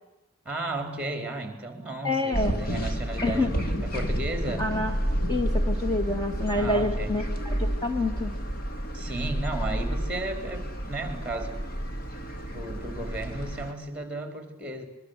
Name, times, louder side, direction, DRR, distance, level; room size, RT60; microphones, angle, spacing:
voice 1, 0.4-4.7 6.5-7.1 8.9-11.6 12.5-14.9, right 2 dB, 5° right, 7 dB, 4.4 m, -34 dB
voice 2, 2.0-2.6 3.2-3.5 4.6-5.0 5.3-8.3, left 2 dB, 20° left, 4 dB, 2.0 m, -27 dB
sound 1, 2.3-13.7, equal, 45° left, 2.5 m, -30 dB
25.5 x 23.0 x 8.3 m, 0.95 s
head